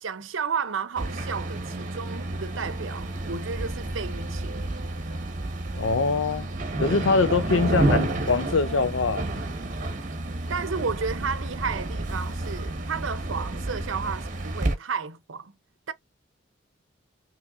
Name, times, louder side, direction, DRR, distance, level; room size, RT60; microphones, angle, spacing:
voice 1, 0.0-4.7 10.5-15.5 15.9-16.0, right 5 dB, 75° right, 0.7 m, -32 dB
sound 1, 1.0-14.7, right 1 dB, 40° right, 1.3 m, -30 dB
voice 2, 5.8-6.5 6.8-9.2, left 4 dB, 75° left, 0.7 m, -23 dB
5.7 x 3.1 x 2.5 m
head